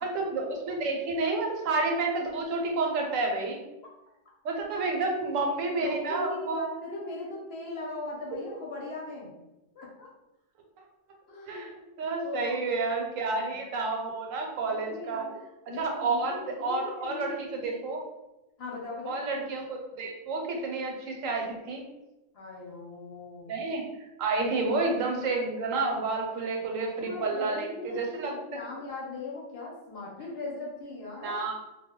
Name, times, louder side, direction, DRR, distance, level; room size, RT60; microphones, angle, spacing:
voice 1, 0.0-3.6 4.4-6.6 11.4-11.7 12.0-15.2 15.8-18.0 19.1-21.8 23.5-23.8 24.2-28.3 31.2-31.6, right 3 dB, 85° right, 1 dB, 1.0 m, -30 dB
voice 2, 5.5-9.3 9.7-10.1 11.3-11.7 12.2-12.6 13.1-13.5 14.7-15.4 15.7-17.8 18.6-19.2 22.3-23.5 24.6-24.7 27.0-31.4, left 3 dB, 60° left, -3 dB, 0.9 m, -39 dB
2.2 x 2.1 x 3.6 m, 0.98 s
omnidirectional pair, 1.3 m